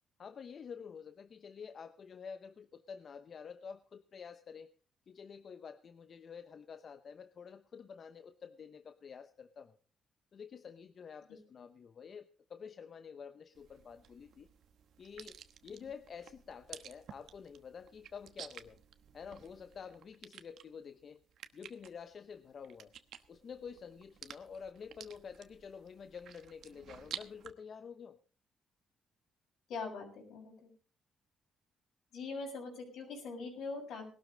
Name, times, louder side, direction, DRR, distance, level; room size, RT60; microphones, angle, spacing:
voice 1, 0.2-4.7 5.1-9.8 10.3-14.5 15.0-18.8 19.1-21.2 21.5-22.9 23.3-28.2, left 6 dB, 50° left, 10 dB, 0.8 m, -49 dB
sound 1, 13.5-27.5, right 9 dB, 70° right, 1.1 m, -52 dB
voice 2, 29.7-30.7 32.1-34.1, left 4 dB, 75° left, 2 dB, 6.6 m, -42 dB
19.5 x 12.5 x 3.9 m, 0.38 s
cardioid pair, 90°, 0 cm